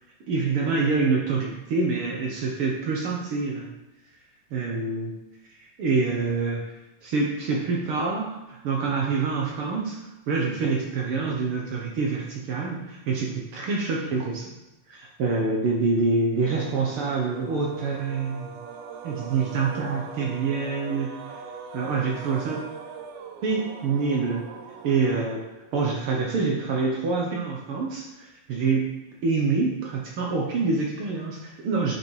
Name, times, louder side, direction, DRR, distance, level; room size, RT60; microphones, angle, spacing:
voice 1, 0.3-3.7 4.5-5.1 5.8-6.6 7.0-10.0 10.3-14.5 14.9-18.5 19.0-21.1 21.7-22.6 23.4-24.5 24.8-25.4 25.7-28.9 29.2-31.9, right 4 dB, 65° right, -2 dB, 1.4 m, -26 dB
sound 1, 16.4-25.7, right 5 dB, 85° right, 2.1 m, -41 dB
8.7 x 5.7 x 3.2 m, 0.96 s
omnidirectional pair, 3.4 m